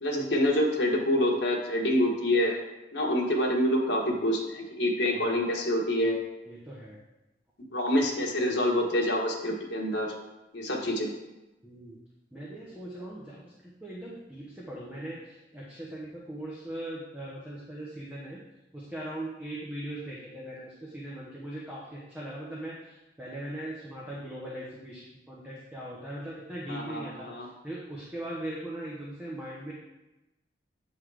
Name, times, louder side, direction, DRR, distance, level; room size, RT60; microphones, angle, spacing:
voice 1, 0.0-2.6 2.9-6.2 7.7-10.1 10.5-11.1 26.7-27.5, left 1 dB, 80° left, -1 dB, 1.3 m, -26 dB
voice 2, 11.6-12.0 12.3-13.3 13.8-15.2 15.5-18.4 18.9-20.7 20.9-21.8 22.1-22.7 23.2-25.0 25.3-27.3 27.6-29.7, right 1 dB, 10° right, -6 dB, 1.0 m, -39 dB
8.3 x 4.0 x 4.7 m, 1.0 s
head